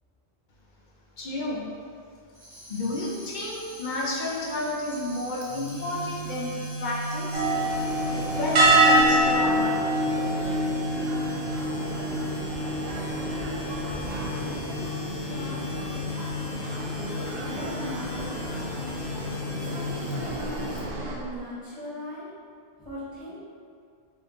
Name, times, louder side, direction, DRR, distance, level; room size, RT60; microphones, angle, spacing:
voice 1, 1.2-1.7 2.7-7.5 8.4-9.6, left 1 dB, 50° left, -3 dB, 0.7 m, -31 dB
Tambourine, 2.3-9.4, equal, 85° right, 1.6 m, -46 dB
sound 1, 5.4-21.4, left 1 dB, 75° left, 1.0 m, -36 dB
sound 2, 7.3-21.1, right 1 dB, 65° right, 0.8 m, -27 dB
voice 2, 13.1-13.9 14.4-15.0 15.3-15.8 16.7-18.5 19.5-22.3 22.8-23.4, left 1 dB, 5° right, -13 dB, 1.1 m, -39 dB
3.6 x 2.6 x 3.7 m, 2.2 s
omnidirectional pair, 1.1 m